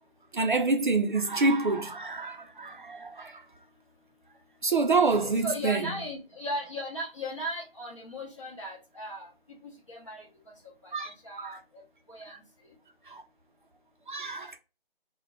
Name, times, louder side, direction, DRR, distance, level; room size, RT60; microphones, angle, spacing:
voice 1, 0.3-3.4 4.6-5.8 10.9-11.1 11.4-11.6 13.1-13.2 14.1-14.6, right 3 dB, 55° right, 0.4 m, -27 dB
voice 2, 4.9-9.3 9.6-10.3 10.8-11.6 12.1-12.3, equal, 30° left, 0.8 m, -37 dB
2.2 x 2.1 x 3.5 m
figure-of-eight pair, 170°, 30 cm